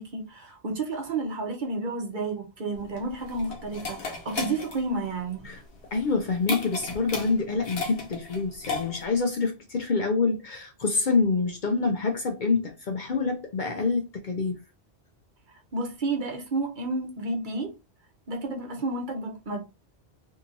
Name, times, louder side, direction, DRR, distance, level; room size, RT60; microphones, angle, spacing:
voice 1, 0.0-5.5 15.5-17.7 18.3-19.6, right 3 dB, 50° right, 0.8 m, -31 dB
sound 1, 2.8-9.2, left 4 dB, 75° left, 1.1 m, -35 dB
voice 2, 5.9-14.6, left 4 dB, 55° left, 0.6 m, -26 dB
2.8 x 2.7 x 2.6 m
omnidirectional pair, 1.1 m